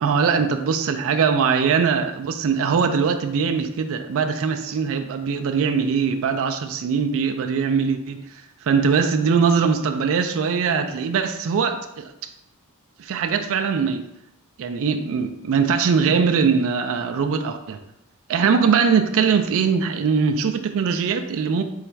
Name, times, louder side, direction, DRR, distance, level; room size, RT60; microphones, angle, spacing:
voice 1, 0.0-8.3 8.6-12.1 13.0-14.1 14.6-17.8 18.3-21.6, right 6 dB, 65° right, 0.3 m, -21 dB
4.0 x 2.4 x 4.4 m
head